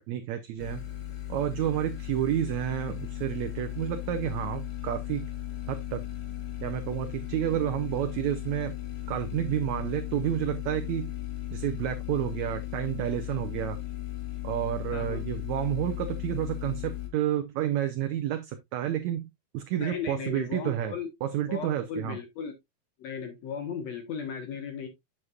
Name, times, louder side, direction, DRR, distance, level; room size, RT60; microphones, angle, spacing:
voice 1, 0.1-0.8 1.3-5.3 5.7-6.0 6.6-8.7 9.1-11.1 11.5-13.8 14.4-19.2 19.5-21.0 21.2-22.2, right 11 dB, 75° right, 1.9 m, -30 dB
sound 1, 0.6-17.1, left 14 dB, 80° left, 3.1 m, -36 dB
voice 2, 14.9-15.2 19.8-21.1 21.5-22.5 23.0-24.9, left 6 dB, 60° left, 2.3 m, -36 dB
7.9 x 7.3 x 2.4 m
omnidirectional pair, 3.7 m